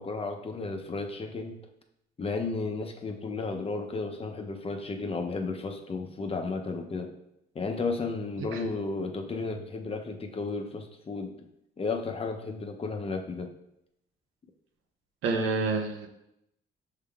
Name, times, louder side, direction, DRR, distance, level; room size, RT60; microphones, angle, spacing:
voice 1, 0.0-1.6 2.2-7.1 7.5-11.4 11.8-13.5, left 3 dB, 30° left, 4 dB, 0.6 m, -33 dB
voice 2, 8.4-8.7 15.2-16.1, right 4 dB, 85° right, 5 dB, 0.6 m, -29 dB
6.4 x 3.5 x 2.3 m, 0.82 s
cardioid pair, 90°, 20 cm